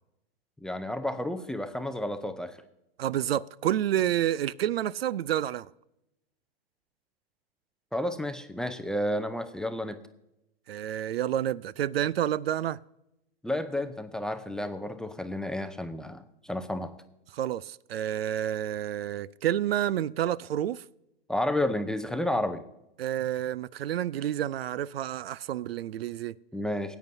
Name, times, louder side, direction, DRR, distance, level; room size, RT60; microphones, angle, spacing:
voice 1, 0.6-2.6 7.9-10.0 13.4-16.9 21.3-22.6 26.5-27.0, left 1 dB, ahead, 0.5 m, -31 dB
voice 2, 3.0-5.7 10.7-12.8 17.3-20.8 23.0-26.3, right 11 dB, 75° right, 0.5 m, -29 dB
19.0 x 9.1 x 2.7 m
hypercardioid pair, 115°, 30 cm